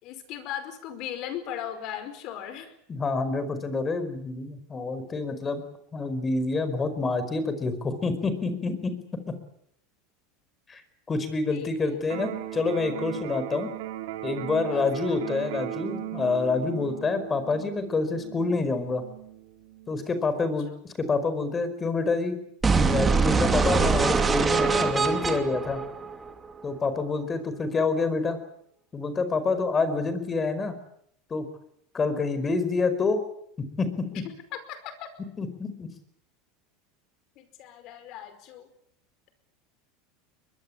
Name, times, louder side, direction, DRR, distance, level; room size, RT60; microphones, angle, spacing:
voice 1, 0.0-2.7 11.5-12.0 14.6-15.2 20.4-20.5 34.1-34.2 34.5-35.1 37.3-38.7, left 10 dB, 55° left, 11 dB, 5.0 m, -38 dB
voice 2, 2.9-5.6 5.9-8.9 9.3-9.4 10.7-10.8 11.1-13.7 14.2-19.0 19.9-20.7 21.0-22.4 22.9-25.8 26.6-28.4 28.9-30.7 31.3-31.5 31.9-33.2 33.6-34.2 35.4-35.9, left 3 dB, 20° left, 11 dB, 4.9 m, -27 dB
Electric guitar, 12.0-20.0, right 13 dB, 80° right, 3.5 m, -37 dB
sound 1, 22.6-26.6, right 4 dB, 20° right, 2.8 m, -23 dB
22.5 x 22.0 x 8.7 m, 0.72 s
supercardioid pair, 125°, 0 cm